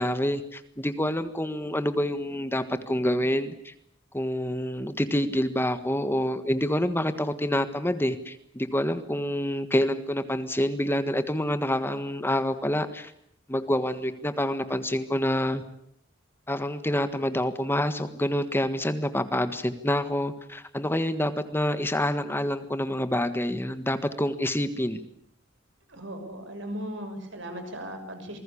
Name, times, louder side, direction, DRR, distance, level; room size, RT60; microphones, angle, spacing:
voice 1, 0.0-3.7 4.1-13.1 13.5-15.6 16.5-25.0, left 1 dB, 10° left, 10 dB, 1.5 m, -27 dB
voice 2, 25.9-28.4, equal, 65° right, 7 dB, 6.5 m, -37 dB
28.0 x 20.5 x 8.6 m, 0.71 s
head